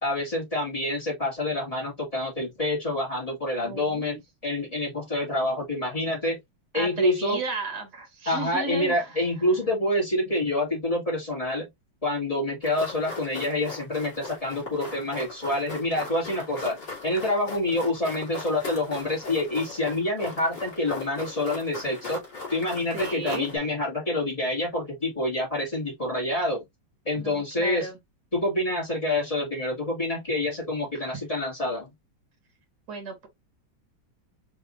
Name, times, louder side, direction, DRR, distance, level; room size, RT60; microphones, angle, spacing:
voice 1, 0.0-6.4 6.7-7.4 8.3-11.7 12.0-22.2 22.5-26.6 27.1-27.9 28.3-31.9, left 1 dB, 20° left, 2.3 m, -27 dB
voice 2, 3.6-4.2 6.7-9.5 22.9-23.5 27.2-28.0 31.1-31.2 32.9-33.3, right 3 dB, 55° right, 2.0 m, -35 dB
sound 1, 12.6-23.6, left 4 dB, 55° left, 3.1 m, -39 dB
5.3 x 3.5 x 2.6 m
omnidirectional pair, 2.2 m